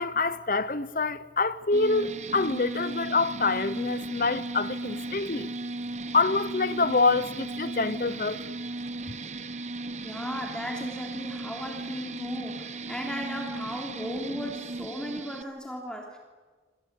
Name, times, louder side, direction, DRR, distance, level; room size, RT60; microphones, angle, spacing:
voice 1, 0.0-5.5 6.1-8.4, left 3 dB, 50° left, 0.9 m, -26 dB
sound 1, 1.7-15.4, right 2 dB, 40° right, 1.2 m, -36 dB
voice 2, 10.0-16.2, equal, 5° left, 3.2 m, -36 dB
27.0 x 26.5 x 8.3 m
head